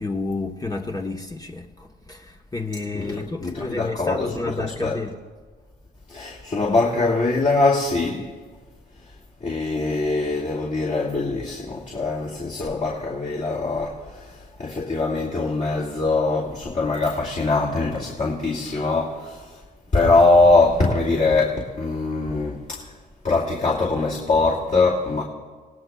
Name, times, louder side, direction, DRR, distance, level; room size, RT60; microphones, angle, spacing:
voice 1, 0.0-5.2, left 3 dB, 20° left, 1.0 m, -30 dB
voice 2, 2.9-5.0 6.1-8.3 9.4-19.6 19.9-22.9 23.2-25.2, left 3 dB, 40° left, 2.6 m, -22 dB
30.0 x 18.0 x 2.3 m
cardioid pair, 90°, 20 cm